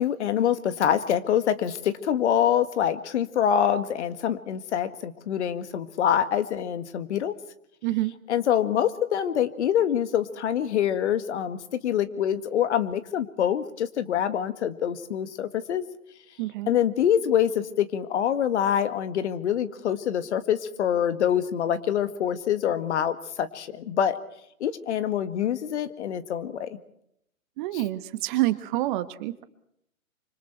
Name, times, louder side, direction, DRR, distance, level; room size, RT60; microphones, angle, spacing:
voice 1, 0.0-7.4 8.3-15.8 16.7-24.2 24.6-26.8 27.7-27.8, left 9 dB, 55° left, 12 dB, 1.9 m, -25 dB
voice 2, 7.8-8.1 16.4-16.7 27.6-29.4, right 16 dB, 35° right, 12 dB, 1.5 m, -27 dB
26.5 x 25.0 x 4.5 m, 0.74 s
hypercardioid pair, 125°, 41 cm